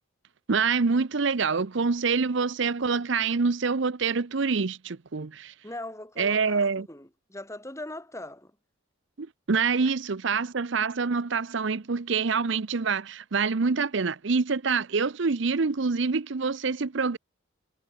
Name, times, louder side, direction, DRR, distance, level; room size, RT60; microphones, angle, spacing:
voice 1, 0.5-5.5 6.2-6.9 9.2-17.2, right 5 dB, 60° right, 0.7 m, -26 dB
voice 2, 5.6-8.5, left 1 dB, 15° left, 5.5 m, -40 dB
head